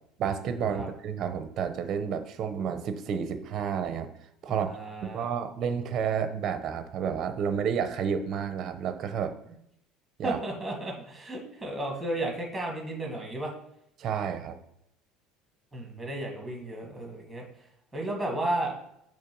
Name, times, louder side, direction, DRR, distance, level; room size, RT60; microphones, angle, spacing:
voice 1, 0.2-4.1 4.4-4.7 5.0-9.3 10.2-10.4 14.0-14.6, right 7 dB, 35° right, 9 dB, 0.7 m, -30 dB
voice 2, 4.5-5.3 10.2-13.5 15.7-17.4 17.9-18.7, right 1 dB, 5° right, 0 dB, 1.6 m, -33 dB
6.7 x 3.3 x 6.0 m, 0.77 s
cardioid pair, 165°, 0 cm